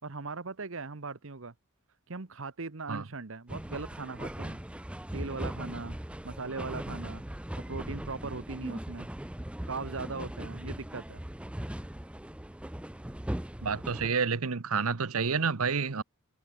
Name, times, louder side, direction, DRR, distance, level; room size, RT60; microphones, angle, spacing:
voice 1, 0.0-1.5 2.1-4.6 5.1-6.0 6.2-7.2 7.6-9.1 9.7-11.2, right 3 dB, 65° right, 1.1 m, -39 dB
sound 1, 3.5-14.1, right 1 dB, 5° right, 0.5 m, -39 dB
voice 2, 13.6-16.0, right 5 dB, 90° right, 1.0 m, -29 dB
head